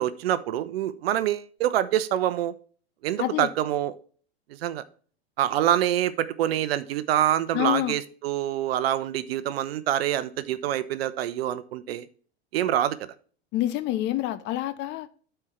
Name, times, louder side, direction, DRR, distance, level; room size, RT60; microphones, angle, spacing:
voice 1, 0.0-2.5 3.0-3.9 4.6-4.8 5.4-12.1 12.5-13.0, right 12 dB, 65° right, 0.8 m, -26 dB
voice 2, 3.2-3.5 7.5-7.9 13.5-15.1, left 14 dB, 35° left, 0.6 m, -27 dB
12.0 x 4.6 x 3.3 m
hypercardioid pair, 105°, 32 cm